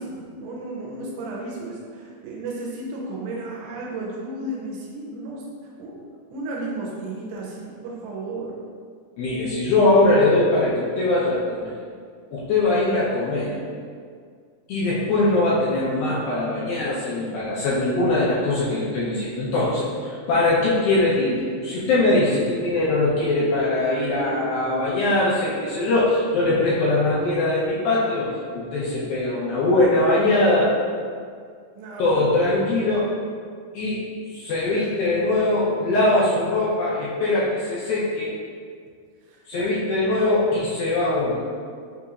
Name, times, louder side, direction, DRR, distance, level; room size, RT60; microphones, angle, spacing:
voice 1, 0.0-8.5 31.8-32.2 34.7-35.0 36.3-36.4 39.3-39.7, right 2 dB, 80° right, -4 dB, 2.7 m, -34 dB
voice 2, 9.2-11.7 12.3-13.6 14.7-30.7 32.0-33.1 33.7-34.0 34.3-38.3 39.5-41.4, left 2 dB, 80° left, -9 dB, 2.2 m, -21 dB
6.6 x 3.0 x 2.4 m, 2.1 s
omnidirectional pair, 4.9 m